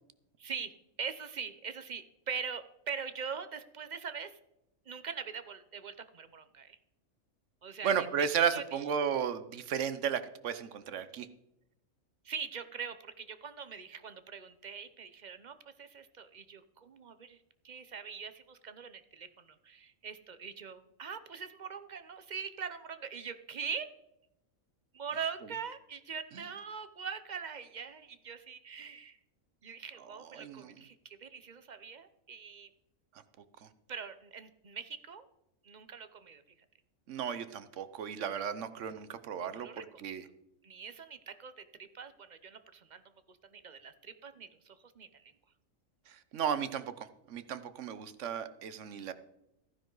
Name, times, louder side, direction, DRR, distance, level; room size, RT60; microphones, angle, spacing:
voice 1, 0.4-0.7 1.0-4.4 4.9-6.8 7.6-7.9 8.2-8.3 8.5-8.8 12.2-17.4 17.6-23.9 24.9-29.2 29.6-32.7 33.9-35.3 35.6-36.4 39.4-40.1 40.6-43.0 43.3-45.3, right 6 dB, 40° right, 11 dB, 0.7 m, -42 dB
voice 2, 7.8-11.3 26.3-26.4 30.0-30.7 37.1-39.7 40.0-40.2 46.1-49.1, right 7 dB, 65° right, 12 dB, 1.1 m, -34 dB
15.0 x 9.9 x 3.9 m, 0.87 s
omnidirectional pair, 1.4 m